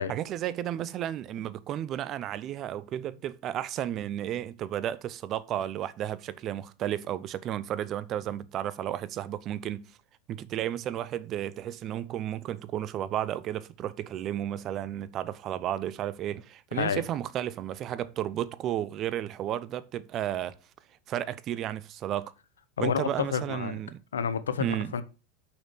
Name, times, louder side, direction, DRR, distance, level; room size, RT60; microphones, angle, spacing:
voice 1, 0.1-9.8 10.3-20.6 21.1-22.3 22.8-24.0 24.6-24.9, right 11 dB, 45° right, 0.7 m, -33 dB
voice 2, 22.8-23.8 24.1-25.0, left 7 dB, 85° left, 0.8 m, -29 dB
6.3 x 5.9 x 6.3 m
hypercardioid pair, 90°, 0 cm